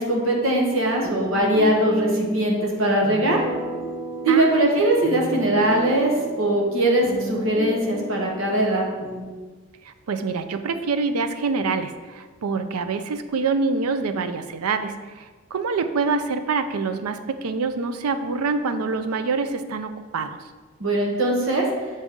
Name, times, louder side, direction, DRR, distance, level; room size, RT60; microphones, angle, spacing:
voice 1, 0.0-3.4 4.2-8.9 20.8-21.7, right 1 dB, 65° right, -1 dB, 1.0 m, -21 dB
sound 1, 1.0-9.2, right 2 dB, 15° right, 1.4 m, -32 dB
voice 2, 4.3-4.7 9.8-20.4, right 4 dB, 85° right, 9 dB, 0.5 m, -26 dB
7.5 x 4.0 x 3.6 m, 1.3 s
head